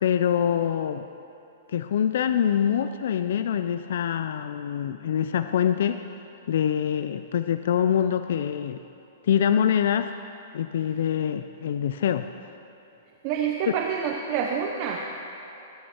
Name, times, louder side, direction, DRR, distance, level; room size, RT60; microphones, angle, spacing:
voice 1, 0.0-1.0 1.7-6.0 6.5-8.8 9.3-10.1 10.5-12.3, left 9 dB, 60° left, 10 dB, 0.4 m, -24 dB
voice 2, 13.2-15.0, right 7 dB, 35° right, 1 dB, 0.8 m, -27 dB
19.5 x 9.4 x 4.5 m, 3.0 s
hypercardioid pair, 165°, 0 cm